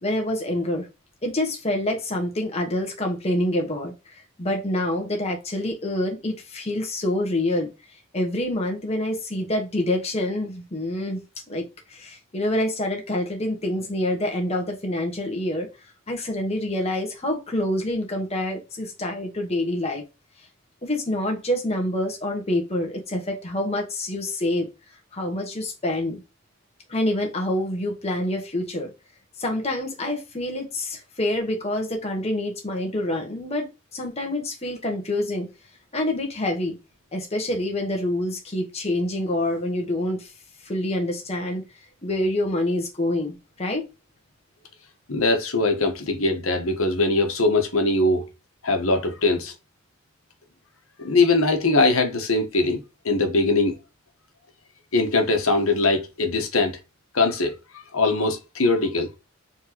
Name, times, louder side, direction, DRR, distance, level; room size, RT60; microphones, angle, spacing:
voice 1, 0.0-0.9 1.2-7.7 8.1-11.2 11.5-15.7 16.1-20.0 20.8-24.7 25.1-26.2 26.9-28.9 29.4-35.5 35.9-36.8 37.1-40.3 40.6-41.6 42.0-43.9, left 1 dB, 30° left, 1.2 m, -26 dB
voice 2, 45.1-48.3 48.6-49.5 51.0-53.8 54.9-56.8 57.1-59.1, left 2 dB, 80° left, 1.2 m, -21 dB
4.4 x 3.5 x 2.9 m
head